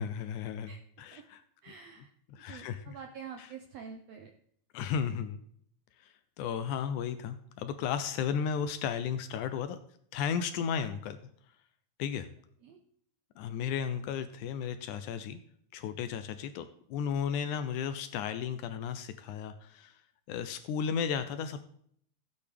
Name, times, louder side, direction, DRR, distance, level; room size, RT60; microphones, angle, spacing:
voice 1, 0.0-0.7 1.0-1.4 2.3-3.0 3.4-3.5 4.7-5.4 6.0-9.8 10.1-11.2 12.0-12.3 13.4-15.4 15.7-20.0 20.3-21.6, left 7 dB, 80° left, 10 dB, 1.8 m, -34 dB
voice 2, 0.7-1.3 1.6-2.1 2.4-4.3 12.6-12.8, right 6 dB, 85° right, 5 dB, 1.4 m, -47 dB
15.0 x 8.5 x 3.4 m, 0.66 s
omnidirectional pair, 4.0 m